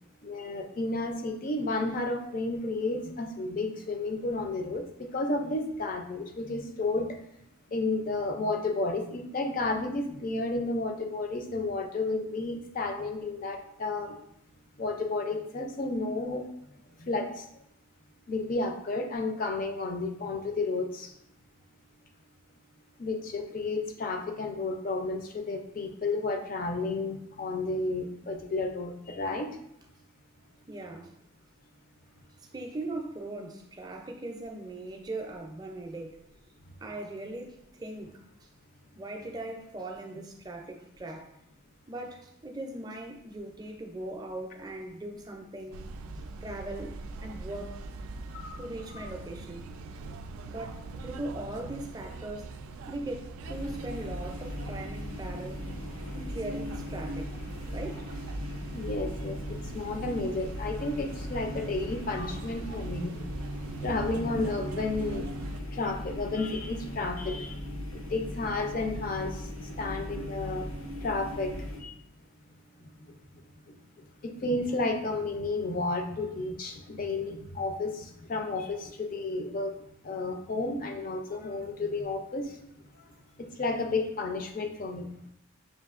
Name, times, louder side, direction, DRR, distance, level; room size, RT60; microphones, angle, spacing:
voice 1, 0.2-7.1 7.7-14.2 14.8-16.4 17.0-17.3 18.3-21.1 23.0-29.5 48.3-48.4 48.9-49.1 58.7-63.1 63.8-65.3 65.7-67.5 67.9-69.4 69.8-70.7 71.0-71.5 71.8-71.9 74.2-79.7 80.0-82.5 83.4-85.1, left 2 dB, 40° left, 5 dB, 0.4 m, -32 dB
voice 2, 30.7-31.2 32.4-36.2 36.8-38.5 38.9-41.4 41.9-45.8 46.4-47.9 48.6-49.7 50.5-52.5 52.9-55.6 56.1-57.4 57.7-58.0, right 2 dB, 20° right, 1 dB, 0.4 m, -39 dB
sound 1, 45.7-65.6, right 3 dB, 85° right, 0.3 m, -42 dB
sound 2, 53.4-71.8, left 1 dB, 85° left, 0.8 m, -38 dB
6.4 x 2.6 x 2.4 m, 0.74 s
head